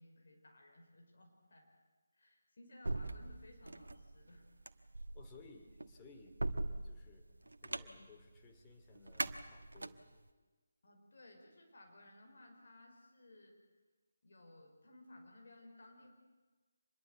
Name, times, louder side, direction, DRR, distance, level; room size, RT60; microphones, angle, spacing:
voice 1, 0.0-1.7 2.1-4.4 10.8-13.6 14.2-16.1, left 1 dB, 50° left, 2 dB, 5.4 m, -59 dB
sound 1, 2.8-10.2, right 2 dB, 70° right, 1.4 m, -42 dB
voice 2, 5.1-7.3 7.6-10.0, left 4 dB, 15° left, 2 dB, 2.6 m, -60 dB
26.0 x 21.5 x 8.3 m, 1.3 s
figure-of-eight pair, 150°, 0 cm